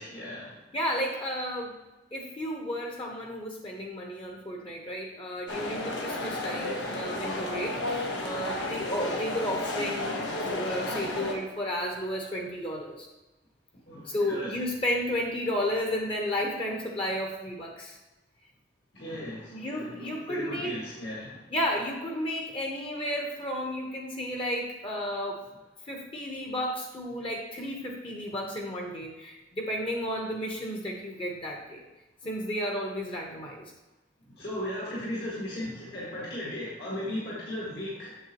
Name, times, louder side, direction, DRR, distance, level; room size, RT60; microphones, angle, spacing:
voice 1, 0.0-0.6 13.9-14.6 18.9-21.4 34.3-38.2, left 1 dB, 60° left, -6 dB, 2.0 m, -36 dB
voice 2, 0.7-1.8 2.1-10.2 10.5-13.1 14.0-18.0 19.5-20.8 21.5-25.5 25.9-31.8 32.2-33.7, equal, 30° left, 1 dB, 1.0 m, -33 dB
sound 1, 5.5-11.3, left 1 dB, 80° left, 1.2 m, -32 dB
8.0 x 7.2 x 3.0 m, 1.1 s
head